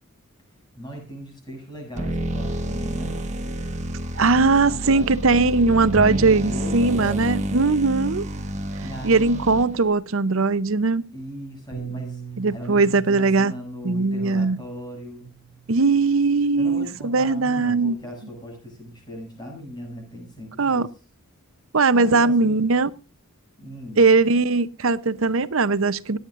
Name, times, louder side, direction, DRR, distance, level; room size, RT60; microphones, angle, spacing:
voice 1, 0.8-3.3 4.3-7.7 8.8-9.5 11.1-12.2 12.5-15.3 16.6-20.9 21.9-22.6 23.6-24.1, equal, 20° left, 7.3 m, -38 dB
sound 1, 1.9-9.9, right 1 dB, 30° right, 1.4 m, -29 dB
voice 2, 4.2-8.2 9.0-11.1 12.4-13.5 13.8-14.6 15.7-18.0 20.6-20.9 21.7-22.9 24.0-26.2, right 3 dB, 65° right, 0.7 m, -20 dB
Bass guitar, 11.7-18.0, right 6 dB, 75° left, 2.0 m, -41 dB
26.0 x 9.5 x 2.5 m
head